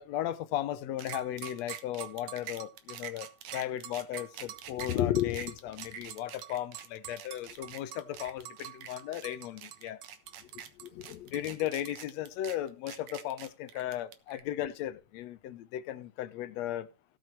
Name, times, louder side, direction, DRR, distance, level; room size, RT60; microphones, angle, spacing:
voice 1, 0.0-10.0 10.4-16.9, left 12 dB, 70° left, 1.8 m, -35 dB
sound 1, 1.0-14.4, right 10 dB, 80° right, 2.7 m, -44 dB
17.5 x 5.9 x 4.5 m
omnidirectional pair, 3.5 m